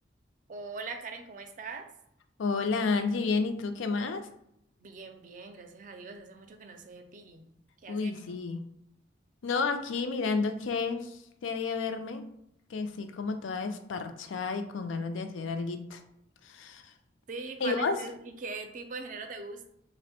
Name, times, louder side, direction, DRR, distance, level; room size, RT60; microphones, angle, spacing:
voice 1, 0.5-1.9 4.8-7.5 7.8-8.4 17.3-19.7, right 3 dB, 45° right, 6 dB, 0.4 m, -41 dB
voice 2, 2.4-4.3 7.9-8.6 9.4-12.2 12.7-16.0 16.4-16.9 17.6-18.0, left 4 dB, 90° left, 8 dB, 0.4 m, -31 dB
3.4 x 2.1 x 4.1 m, 0.76 s
head